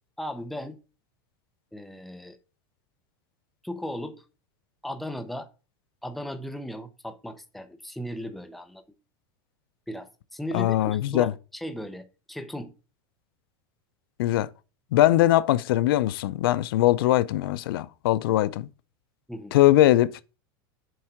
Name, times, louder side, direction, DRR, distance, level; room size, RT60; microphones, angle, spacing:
voice 1, 0.2-0.8 1.7-2.4 3.6-4.2 4.8-5.5 6.0-8.8 9.9-12.7 19.3-19.6, equal, ahead, 0.6 m, -36 dB
voice 2, 10.5-11.3 14.2-14.5 14.9-18.7 19.5-20.2, left 14 dB, 85° left, 0.5 m, -21 dB
7.8 x 3.6 x 5.7 m
supercardioid pair, 165°, 12 cm